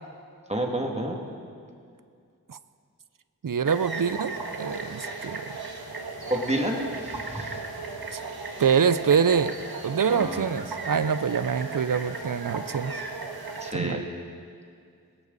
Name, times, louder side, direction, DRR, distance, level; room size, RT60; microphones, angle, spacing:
voice 1, 0.5-1.2 5.2-5.4 6.3-7.6 10.1-10.5 13.6-14.0, right 1 dB, 15° right, 0 dB, 2.3 m, -30 dB
voice 2, 3.4-5.4 8.1-8.2 8.6-9.6 9.8-12.9 13.7-14.1, right 6 dB, 60° right, 15 dB, 0.6 m, -25 dB
sound 1, 3.6-13.7, right 3 dB, 80° right, 1.5 m, -36 dB
20.0 x 16.5 x 4.1 m, 2.3 s
wide cardioid pair, 50°, 36 cm